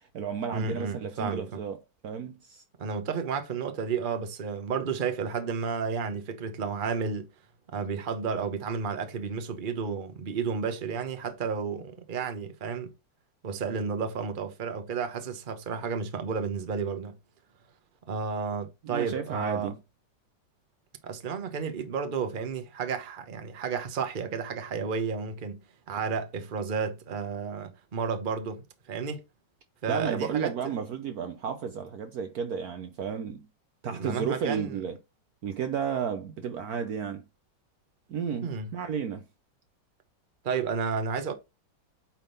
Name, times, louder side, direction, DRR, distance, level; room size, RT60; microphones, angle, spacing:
voice 1, 0.0-2.6 18.8-19.8 29.9-33.5 33.8-35.0 35.4-37.2 38.1-39.2, right 7 dB, 65° right, 1.1 m, -33 dB
voice 2, 0.5-1.5 2.8-7.3 7.7-12.9 13.4-17.2 18.1-19.7 21.0-25.6 25.9-29.2 29.8-30.7 33.9-34.8 38.4-38.7 40.4-41.3, right 5 dB, 35° right, 1.0 m, -32 dB
8.9 x 3.7 x 3.9 m
omnidirectional pair, 2.0 m